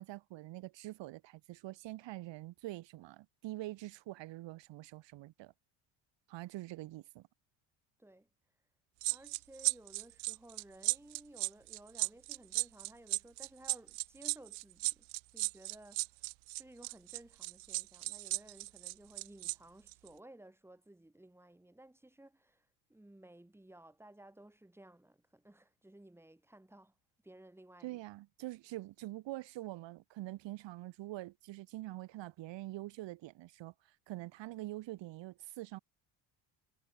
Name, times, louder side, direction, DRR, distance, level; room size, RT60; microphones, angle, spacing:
voice 1, 0.0-5.5 6.3-7.3 27.8-35.8, right 17 dB, 70° right, 2.0 m, -45 dB
sound 1, 9.0-19.5 19.9-20.1, right 30 dB, 85° right, 0.8 m, -36 dB
voice 2, 9.1-15.1 15.3-16.1 16.6-26.9 27.2-28.0, right 1 dB, 5° right, 3.5 m, -57 dB
cardioid pair, 100°, 46 cm